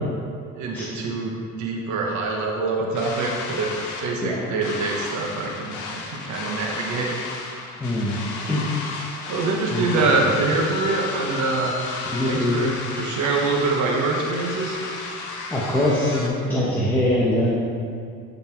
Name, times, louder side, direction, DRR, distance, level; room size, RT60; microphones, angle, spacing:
voice 1, 0.5-7.1 9.3-11.8 12.2-14.8, right 3 dB, 80° right, 0 dB, 1.1 m, -25 dB
sound 1, 2.9-16.3, left 3 dB, 85° left, 1.1 m, -33 dB
voice 2, 7.8-8.2 8.5-8.7 9.7-10.0 12.1-12.6 15.5-17.5, left 1 dB, 5° left, -8 dB, 1.3 m, -22 dB
11.5 x 4.1 x 4.5 m, 2.3 s
cardioid pair, 105°, 29 cm